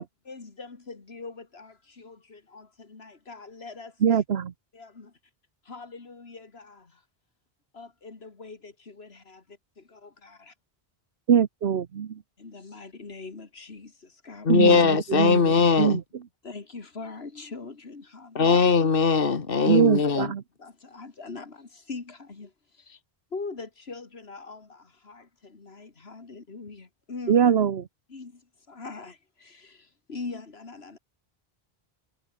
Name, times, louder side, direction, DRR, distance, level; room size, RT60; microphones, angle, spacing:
voice 1, 0.0-4.2 4.7-5.1 5.6-7.0 7.7-9.4 9.8-10.5 12.4-14.6 16.4-18.6 19.7-19.8 20.6-22.9 23.3-27.4 28.1-31.0, left 4 dB, 85° left, 2.5 m, -42 dB
voice 2, 4.0-4.5 11.3-12.1 14.5-15.4 15.8-16.0 19.7-20.4 27.3-27.9, right 8 dB, 80° right, 1.2 m, -22 dB
voice 3, 14.4-16.0 18.3-20.3, left 5 dB, 65° left, 1.6 m, -20 dB
omnidirectional pair, 1.0 m